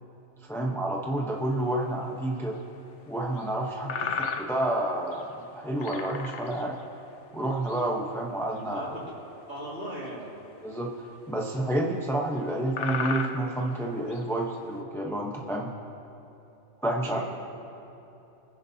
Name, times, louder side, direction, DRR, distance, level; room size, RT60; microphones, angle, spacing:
voice 1, 0.4-2.6 3.1-3.9 4.4-6.8 7.3-9.0 10.6-15.7 16.8-17.2, right 1 dB, ahead, -1 dB, 0.8 m, -29 dB
sound 1, 1.8-1.9 2.4-2.5 3.4-3.5 3.9-4.8 5.1-5.3 5.8-6.8 7.4-7.8 8.5-8.8 10.1-10.2 10.8-10.9 11.7-11.8 12.4-12.5 12.7-14.2, left 5 dB, 65° left, 1.1 m, -34 dB
voice 2, 8.7-9.0 9.5-10.3 17.0-17.2, right 1 dB, 55° right, -7 dB, 3.8 m, -38 dB
26.5 x 10.0 x 2.8 m, 3.0 s
omnidirectional pair, 1.4 m